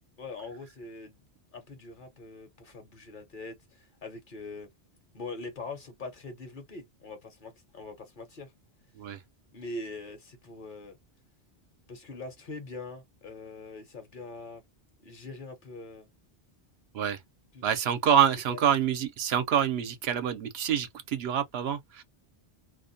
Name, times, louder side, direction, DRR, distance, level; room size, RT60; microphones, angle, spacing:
voice 1, 0.2-1.2 1.5-4.7 5.1-8.5 9.5-11.0 11.9-14.6 15.0-16.1 17.5-17.6 18.5-18.6, left 3 dB, 50° left, 0.9 m, -42 dB
voice 2, 17.6-22.0, right 9 dB, 70° right, 0.8 m, -26 dB
2.4 x 2.1 x 2.5 m
omnidirectional pair, 1.1 m